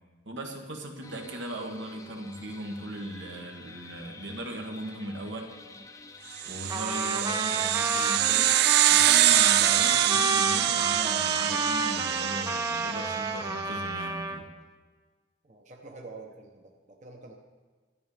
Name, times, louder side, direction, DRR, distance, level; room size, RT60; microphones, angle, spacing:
voice 1, 0.3-5.5 6.5-8.5 8.9-14.5, right 1 dB, 80° right, 1 dB, 1.7 m, -38 dB
sound 1, 1.0-13.0, left 3 dB, 20° left, 0.7 m, -49 dB
sound 2, 6.4-13.2, right 14 dB, 60° right, 0.3 m, -24 dB
Trumpet, 6.7-14.4, right 2 dB, 20° right, 0.7 m, -31 dB
voice 2, 15.4-17.4, right 3 dB, 40° right, 1 dB, 1.0 m, -47 dB
12.5 x 9.5 x 5.1 m, 1.4 s
head